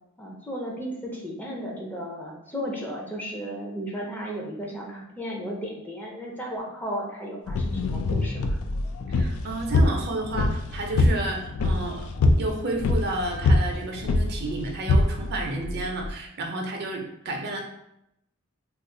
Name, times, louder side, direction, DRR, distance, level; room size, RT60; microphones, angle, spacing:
voice 1, 0.2-8.6, equal, 10° left, -2 dB, 0.5 m, -34 dB
sound 1, 7.5-16.1, left 2 dB, 80° left, 0.3 m, -24 dB
voice 2, 9.1-12.0 12.4-17.6, right 2 dB, 50° right, 2 dB, 0.5 m, -31 dB
2.4 x 2.4 x 3.7 m, 0.82 s
head